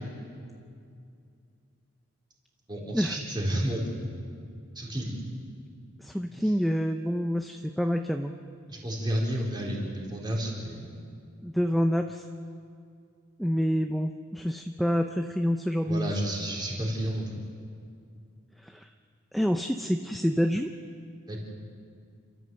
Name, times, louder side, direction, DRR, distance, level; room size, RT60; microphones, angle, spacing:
voice 1, 2.7-3.8 4.7-5.1 6.4-6.5 8.7-10.9 15.8-17.3 21.3-21.4, right 1 dB, 20° right, -3 dB, 4.2 m, -31 dB
voice 2, 6.0-8.3 11.4-12.3 13.4-16.1 18.6-18.9 19.3-20.7, equal, ahead, 5 dB, 0.5 m, -27 dB
29.0 x 13.5 x 7.8 m, 2.4 s
head